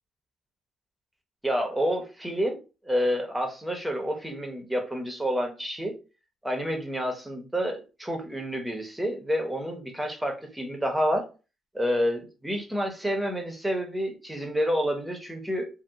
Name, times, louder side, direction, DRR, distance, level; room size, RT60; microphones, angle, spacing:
voice 1, 1.4-2.6 2.8-5.9 6.4-11.3 11.7-15.7, equal, 5° right, 1.0 m, -29 dB
2.7 x 2.3 x 3.4 m
cardioid pair, 90°, 0 cm